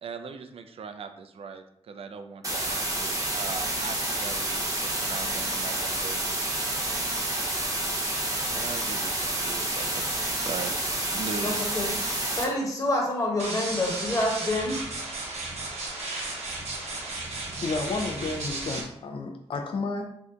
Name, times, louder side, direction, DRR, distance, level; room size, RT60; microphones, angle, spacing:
voice 1, 0.0-6.4 8.5-10.7 11.1-11.7, right 5 dB, 60° right, 8 dB, 0.4 m, -40 dB
sound 1, 2.4-12.4, right 1 dB, 30° right, 0.8 m, -29 dB
voice 2, 11.4-11.9 12.4-14.8, left 1 dB, 30° left, -2 dB, 1.1 m, -27 dB
sound 2, 13.4-18.8, right 2 dB, 75° right, 0.8 m, -34 dB
voice 3, 17.6-20.0, left 3 dB, 55° left, 4 dB, 0.4 m, -31 dB
2.7 x 2.1 x 3.7 m, 0.74 s
cardioid pair, 65°, 11 cm